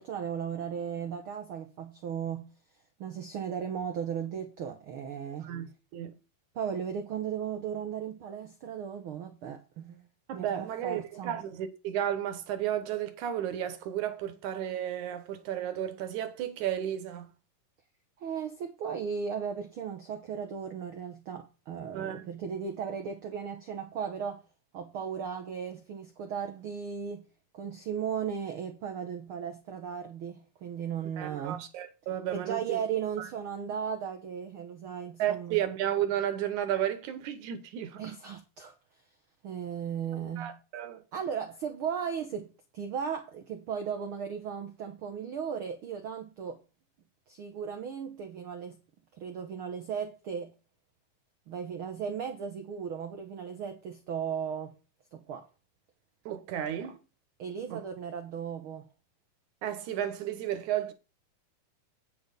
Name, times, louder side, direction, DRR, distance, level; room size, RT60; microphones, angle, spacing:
voice 1, 0.0-2.5 3.0-5.5 6.5-10.1 10.3-11.4 18.2-24.4 24.7-27.2 27.5-31.6 32.3-35.6 38.0-38.8 39.4-40.6 41.1-46.6 47.3-48.8 49.1-50.5 51.5-54.7 55.1-55.5 56.8-56.9 57.4-58.9, right 7 dB, 90° right, 1.1 m, -36 dB
voice 2, 5.4-6.2 10.3-17.3 21.9-22.3 31.2-32.8 33.2-33.3 35.2-38.0 40.3-41.0 56.3-57.0 57.7-57.8 59.6-60.9, right 11 dB, 70° right, 2.4 m, -33 dB
8.7 x 6.6 x 5.2 m
omnidirectional pair, 3.9 m